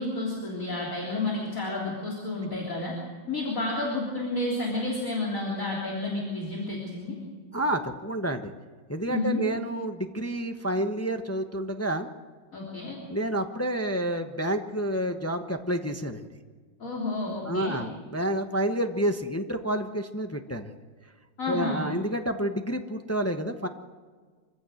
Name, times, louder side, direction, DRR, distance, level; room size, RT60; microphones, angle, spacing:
voice 1, 0.0-3.0 3.3-7.2 9.1-9.4 12.5-13.0 16.8-17.8 21.4-21.8, left 2 dB, 40° left, -4 dB, 4.0 m, -30 dB
voice 2, 7.5-8.5 8.9-12.1 13.1-16.3 17.4-20.7 21.5-23.7, right 1 dB, 20° left, 6 dB, 0.4 m, -29 dB
26.0 x 16.0 x 7.8 m, 1.5 s
omnidirectional pair, 2.2 m